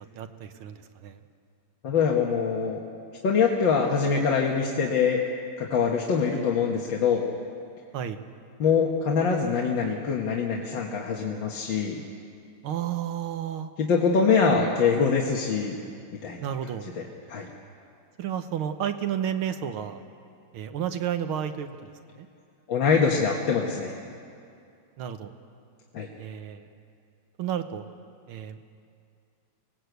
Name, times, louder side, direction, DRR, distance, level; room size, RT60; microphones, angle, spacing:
voice 1, 0.2-1.2 7.9-8.2 12.6-13.7 14.5-14.7 16.4-16.9 18.2-20.0 20.5-21.9 22.2-22.3 25.0-25.3 26.2-26.7 27.4-27.8 28.3-28.6, right 9 dB, 80° right, 8 dB, 1.8 m, -31 dB
voice 2, 1.8-2.8 3.2-5.2 5.6-7.2 8.6-12.0 13.8-15.8 16.2-16.4 16.8-17.0 17.3-17.5 22.7-23.9 25.9-26.1, left 5 dB, 60° left, -1 dB, 2.1 m, -24 dB
26.0 x 18.5 x 8.1 m, 2.4 s
omnidirectional pair, 2.4 m